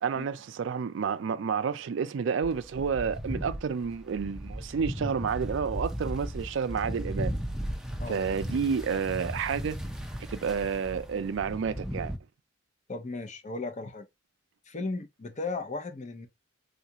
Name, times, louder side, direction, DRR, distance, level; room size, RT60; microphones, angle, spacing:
voice 1, 0.0-7.4 8.1-9.8 10.3-12.1, right 6 dB, 65° right, 0.4 m, -30 dB
sound 1, 2.4-12.2, equal, 5° right, 0.4 m, -36 dB
voice 2, 12.9-14.0 14.7-16.3, left 3 dB, 35° left, 0.6 m, -36 dB
3.8 x 2.4 x 2.8 m
head